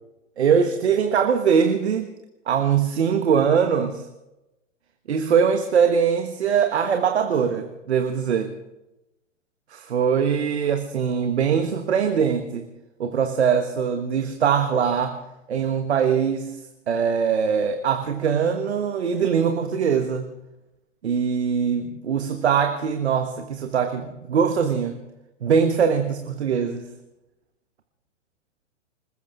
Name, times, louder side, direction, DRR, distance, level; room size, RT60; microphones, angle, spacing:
voice 1, 0.4-2.1 2.5-4.0 5.1-8.5 9.7-12.6 13.0-15.2 15.5-16.5 16.9-20.3 21.0-25.0 25.4-26.9, right 7 dB, 60° right, 7 dB, 1.5 m, -22 dB
26.5 x 14.5 x 3.6 m, 0.96 s
figure-of-eight pair, 110°, 37 cm